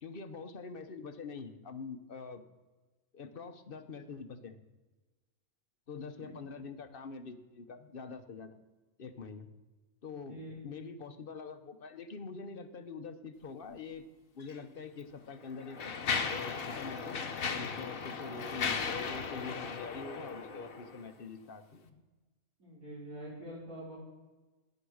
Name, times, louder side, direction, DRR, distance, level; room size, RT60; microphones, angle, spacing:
voice 1, 0.0-2.4 3.1-4.6 5.9-8.6 9.0-9.5 10.0-14.1 14.3-16.0 16.3-17.2 17.5-22.0, left 4 dB, 40° left, 9 dB, 1.1 m, -45 dB
voice 2, 6.0-6.3 10.1-10.5 22.6-24.0, right 1 dB, 70° right, -5 dB, 5.4 m, -46 dB
Mechanisms, 14.4-14.6 15.3-21.1, left 5 dB, 70° left, 1.5 m, -36 dB
13.5 x 10.5 x 6.5 m, 1.2 s
omnidirectional pair, 1.5 m